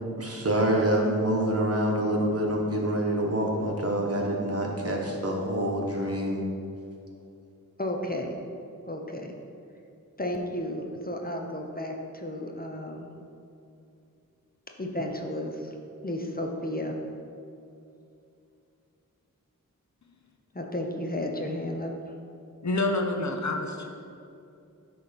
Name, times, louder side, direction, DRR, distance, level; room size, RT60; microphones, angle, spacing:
voice 1, 0.2-6.4, right 1 dB, 45° right, -1 dB, 1.5 m, -26 dB
voice 2, 7.8-8.4 8.9-9.3 10.2-13.1 14.8-15.8 16.0-17.0 20.5-21.9, left 1 dB, 25° left, 2 dB, 1.0 m, -33 dB
voice 3, 22.6-23.9, left 2 dB, 55° left, 3 dB, 0.9 m, -27 dB
9.2 x 3.6 x 6.0 m, 2.6 s
cardioid pair, 40°, 34 cm